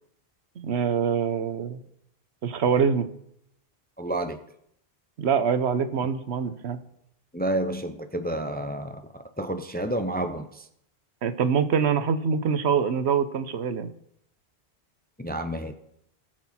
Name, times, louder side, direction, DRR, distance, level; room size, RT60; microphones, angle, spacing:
voice 1, 0.6-1.8 2.4-3.1 5.2-6.8 11.2-13.9, right 6 dB, 80° right, 1.1 m, -24 dB
voice 2, 4.0-4.4 7.3-10.6 15.2-15.7, right 1 dB, 10° left, 0.5 m, -30 dB
18.5 x 6.3 x 4.3 m
omnidirectional pair, 1.1 m